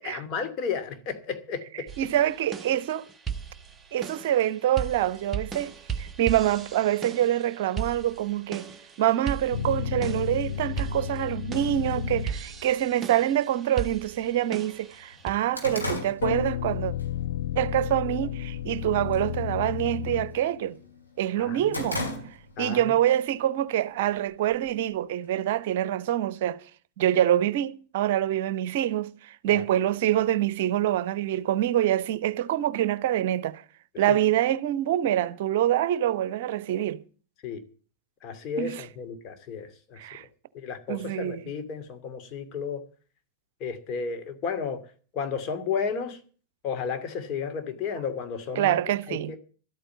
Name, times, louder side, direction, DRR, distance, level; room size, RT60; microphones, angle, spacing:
voice 1, 0.0-1.9 21.4-21.9 22.6-23.0 29.5-29.7 37.4-37.6 38.2-40.0 40.5-42.8 43.6-44.8 45.1-46.2 46.6-48.8 49.1-49.4, left 6 dB, 35° left, 2.5 m, -33 dB
sound 1, 1.9-15.3, right 7 dB, 20° right, 1.1 m, -38 dB
voice 2, 2.0-3.0 3.9-8.7 9.0-16.9 17.6-20.8 21.2-22.0 22.6-26.6 27.0-33.6 34.0-37.0 38.6-38.8 40.0-40.2 40.9-41.4 48.6-49.3, right 12 dB, 55° right, 0.8 m, -25 dB
sound 2, 9.5-12.6 16.2-20.8, left 9 dB, 60° left, 0.6 m, -32 dB
sound 3, 12.7-12.8 13.7-13.8 14.2-14.3 14.7-17.1 17.5-17.8 18.2-18.7 19.0-19.3 19.6-20.8 21.2-22.7 23.1-23.2 24.1-25.0, left 1 dB, 85° left, 3.5 m, -35 dB
12.5 x 8.9 x 8.2 m
figure-of-eight pair, 90°, 0 cm